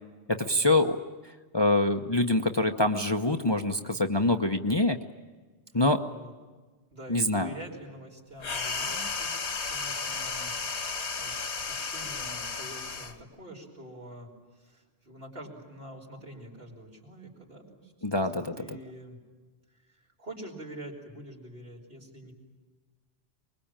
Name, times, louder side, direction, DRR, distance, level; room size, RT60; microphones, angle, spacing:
voice 1, 0.3-1.0 1.5-5.0 5.7-6.0 7.1-7.5 18.0-18.6, left 2 dB, 25° left, 6 dB, 0.9 m, -25 dB
voice 2, 6.9-9.3 9.7-10.5 11.1-18.3 18.6-19.2 19.8-22.3, right 1 dB, 60° right, 0 dB, 5.6 m, -46 dB
sound 1, 8.4-13.2, left 4 dB, 90° left, 2.0 m, -33 dB
24.5 x 21.5 x 8.9 m, 1.4 s
omnidirectional pair, 1.1 m